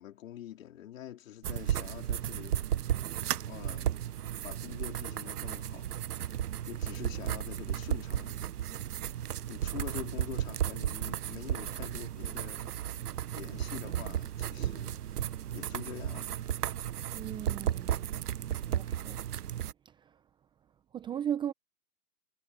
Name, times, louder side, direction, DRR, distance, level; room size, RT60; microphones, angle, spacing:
voice 1, 0.0-2.7 3.5-3.9 4.4-5.9 6.1-6.4 6.7-8.5 9.0-9.2 9.5-12.8 13.3-15.2 15.5-16.4, left 12 dB, 60° left, 4.0 m, -45 dB
sound 1, 1.4-19.7, right 11 dB, 80° right, 0.8 m, -34 dB
voice 2, 17.1-18.1 18.7-19.2 19.8-20.2 20.9-21.5, right 9 dB, 10° right, 0.8 m, -37 dB
hypercardioid pair, 135°, 46 cm